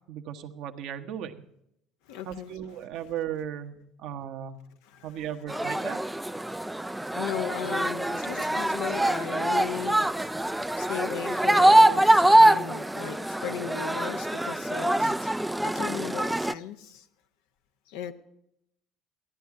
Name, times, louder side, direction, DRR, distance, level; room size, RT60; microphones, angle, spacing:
voice 1, 0.1-1.4 2.2-4.6 5.0-6.0 14.9-15.1, right 10 dB, 65° right, 1.1 m, -36 dB
voice 2, 2.1-2.5 4.9-5.1 6.4-17.0 17.9-18.1, left 8 dB, 75° left, 0.9 m, -37 dB
sound 1, 5.5-16.5, right 1 dB, 5° right, 0.4 m, -23 dB
14.5 x 10.5 x 4.8 m
hypercardioid pair, 70°, 0 cm